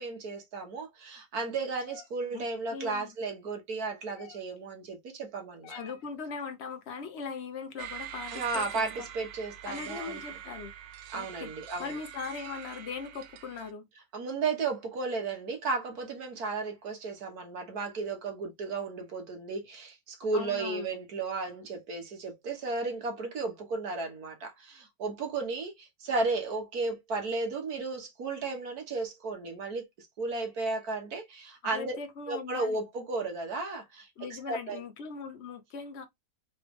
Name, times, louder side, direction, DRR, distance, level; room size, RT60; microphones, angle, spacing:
voice 1, 0.0-5.8 8.3-10.2 11.1-12.0 14.1-32.0 32.3-34.8, right 3 dB, 60° right, 1.7 m, -34 dB
sound 1, 1.8-2.1 4.2-4.6 5.6-6.1 7.8-7.9 8.5-8.9, left 8 dB, 85° left, 1.4 m, -47 dB
voice 2, 2.7-3.1 5.7-9.1 9.6-10.7 11.1-11.5 11.8-13.9 20.3-20.9 31.7-32.8 34.2-36.1, left 5 dB, 45° left, 0.9 m, -40 dB
sound 2, 7.8-13.7, right 10 dB, 80° right, 1.3 m, -44 dB
4.1 x 3.3 x 3.2 m
omnidirectional pair, 1.9 m